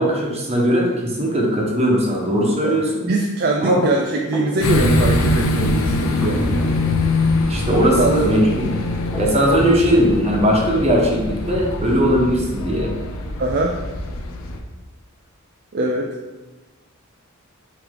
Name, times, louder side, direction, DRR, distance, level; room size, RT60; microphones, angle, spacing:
voice 1, 0.0-3.0 3.6-3.8 7.5-8.7 9.2-12.9, equal, 30° right, -2 dB, 1.2 m, -18 dB
voice 2, 3.1-6.7 8.0-8.2 13.4-13.8 15.7-16.2, right 2 dB, 45° right, 1 dB, 0.5 m, -22 dB
sound 1, 3.6-4.6 6.0-6.8 8.9-9.8, right 1 dB, 5° left, 1.2 m, -31 dB
sound 2, 4.6-14.6, left 2 dB, 70° left, 0.8 m, -22 dB
7.9 x 3.2 x 3.8 m, 1.2 s
head